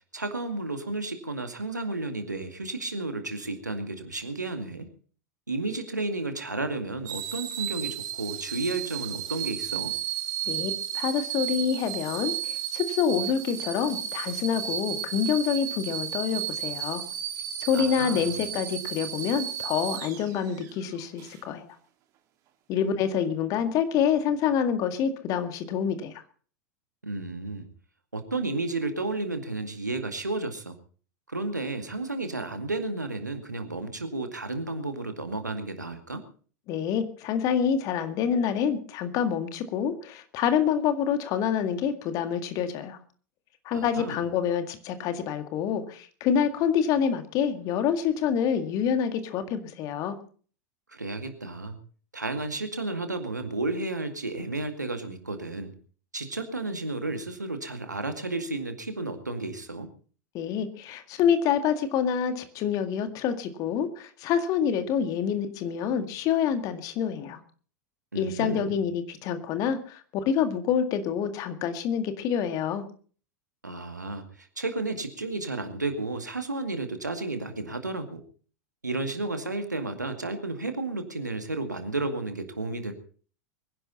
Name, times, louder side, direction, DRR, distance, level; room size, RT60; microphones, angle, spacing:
voice 1, 0.1-4.9 5.5-9.9 17.7-18.4 27.0-27.7 28.1-30.8 31.3-36.3 43.7-44.2 50.9-51.8 52.1-55.7 56.1-59.9 68.1-68.8 73.6-78.2 78.8-82.9, right 2 dB, 80° right, 8 dB, 2.2 m, -32 dB
sound 1, 7.1-20.7 21.2-21.4, right 10 dB, 35° right, 2.3 m, -33 dB
voice 2, 10.5-17.0 17.6-21.8 22.7-26.2 36.7-43.0 43.7-50.2 60.3-67.4 68.1-72.8, left 8 dB, 40° left, 9 dB, 2.0 m, -27 dB
23.5 x 11.0 x 4.1 m, 0.42 s
figure-of-eight pair, 90°, 9 cm